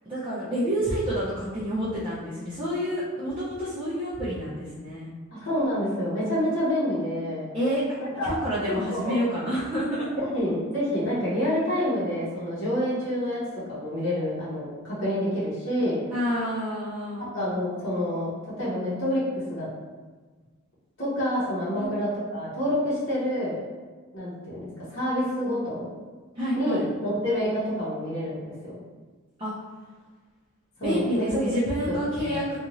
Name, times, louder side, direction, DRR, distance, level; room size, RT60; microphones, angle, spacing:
voice 1, 0.0-5.1 7.5-7.9 8.2-10.1 16.1-17.3 21.8-21.9 26.3-26.9 29.4-29.5 30.8-32.6, equal, 20° right, -11 dB, 0.5 m, -28 dB
voice 2, 5.3-7.5 8.0-8.4 8.9-9.2 10.2-13.4 13.7-16.0 17.3-18.3 18.6-19.7 21.0-23.6 24.1-25.9 26.6-28.4 28.6-28.8 30.8-31.4 31.9-32.4, equal, 55° left, -9 dB, 1.0 m, -27 dB
2.6 x 2.4 x 2.9 m, 1.4 s
head